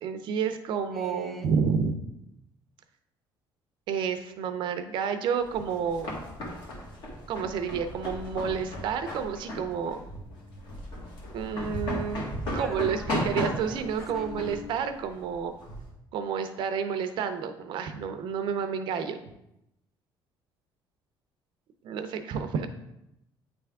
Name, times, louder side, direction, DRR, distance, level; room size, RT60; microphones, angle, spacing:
voice 1, 0.0-2.0 3.9-6.1 7.3-10.0 11.3-15.5 16.1-19.2 21.8-22.7, right 6 dB, 65° right, 9 dB, 0.5 m, -30 dB
voice 2, 0.9-1.5 12.5-14.3, equal, ahead, 1 dB, 0.5 m, -44 dB
sound 1, 5.5-15.9, left 1 dB, 65° left, 1.5 m, -35 dB
sound 2, 8.9-14.7, left 8 dB, 35° left, 1.1 m, -50 dB
8.8 x 3.4 x 3.5 m, 0.86 s
cardioid pair, 155°, 9 cm